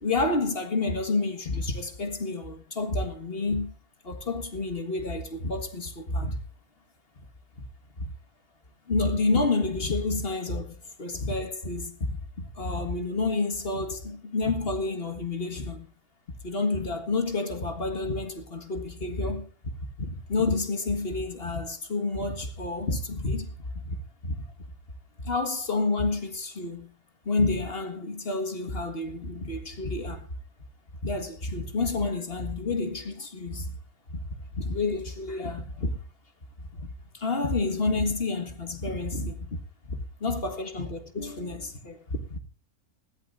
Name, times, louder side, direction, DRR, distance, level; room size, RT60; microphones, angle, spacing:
voice 1, 0.0-3.7 4.0-6.4 7.2-7.3 8.0-8.1 8.9-15.9 16.4-19.5 20.0-24.4 25.2-26.9 27.3-30.3 31.0-33.7 34.1-34.2 34.5-36.0 36.7-36.9 37.1-39.6 39.8-42.4, left 3 dB, 40° left, 1.8 m, -29 dB
20.0 x 15.0 x 2.6 m
omnidirectional pair, 1.5 m